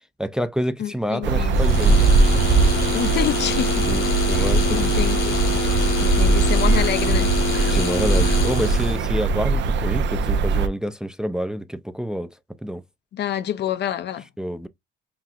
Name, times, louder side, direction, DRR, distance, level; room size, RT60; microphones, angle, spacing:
voice 1, 0.2-2.0 3.9-5.1 7.7-12.3 12.6-12.8 14.4-14.7, equal, 5° right, 0.4 m, -27 dB
voice 2, 0.8-1.6 2.9-3.9 4.3-5.4 6.0-7.3 13.1-14.2, left 10 dB, 60° left, 0.5 m, -27 dB
sound 1, 1.2-10.7, right 4 dB, 65° right, 0.5 m, -20 dB
sound 2, 1.5-9.0, left 5 dB, 85° left, 1.8 m, -26 dB
5.7 x 2.4 x 2.4 m
cardioid pair, 90°, 20 cm